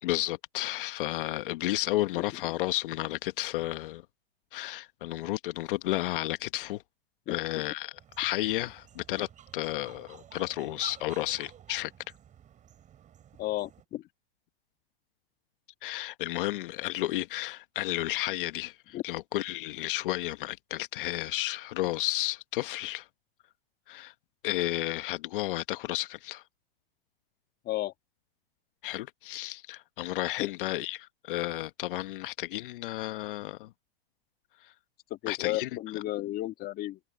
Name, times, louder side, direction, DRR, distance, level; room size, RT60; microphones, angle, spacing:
voice 1, 0.0-4.0 4.5-6.8 7.3-9.3 9.5-11.9 15.8-23.1 23.9-24.1 24.4-26.4 28.8-33.7 34.6-34.7 35.3-35.7, left 16 dB, 60° left, 1.2 m, -32 dB
sound 1, 8.0-13.8, right 10 dB, 25° right, 6.3 m, -51 dB
voice 2, 13.4-14.0 18.9-19.0 27.7-27.9 30.4-30.5 35.1-37.0, left 16 dB, 30° left, 1.7 m, -33 dB
hypercardioid pair, 130°, 30 cm